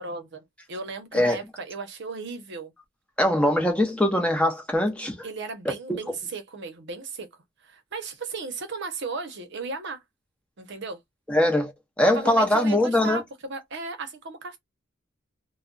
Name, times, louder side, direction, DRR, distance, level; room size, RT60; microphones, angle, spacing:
voice 1, 0.0-2.7 5.2-7.3 7.6-10.0 10.6-11.0 12.0-13.2 13.5-14.6, right 4 dB, 60° right, 0.8 m, -35 dB
voice 2, 3.2-5.3 5.7-6.0 11.3-11.7 12.0-13.2, left 1 dB, 5° left, 0.8 m, -22 dB
2.3 x 2.1 x 3.8 m
head